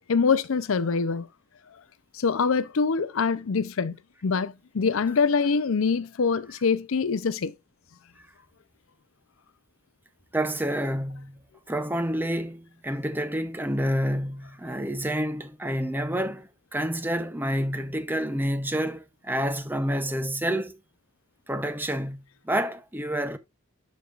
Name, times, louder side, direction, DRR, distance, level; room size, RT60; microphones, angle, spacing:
voice 1, 0.1-1.3 2.1-7.5, left 5 dB, 75° left, 0.5 m, -24 dB
voice 2, 10.3-11.4 11.7-20.8 21.5-23.4, equal, 10° right, 0.7 m, -28 dB
11.5 x 5.3 x 2.4 m
head